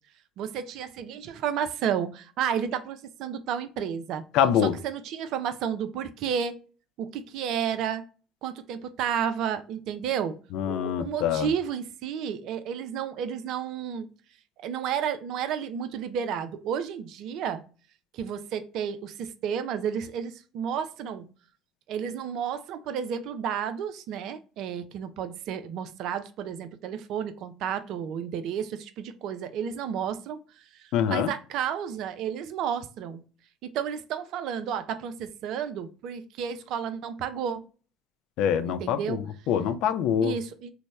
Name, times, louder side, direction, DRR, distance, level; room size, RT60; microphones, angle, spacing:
voice 1, 0.4-4.2 4.6-6.6 7.0-8.0 8.4-10.4 10.7-14.1 14.6-17.6 18.1-21.3 21.9-30.4 31.1-33.2 33.6-37.6 38.6-39.2 40.2-40.7, right 8 dB, 55° right, 0.3 m, -32 dB
voice 2, 4.3-4.7 10.5-11.5 30.9-31.3 38.4-40.3, left 9 dB, 55° left, 0.3 m, -25 dB
3.0 x 2.0 x 3.3 m
figure-of-eight pair, 60°, 0 cm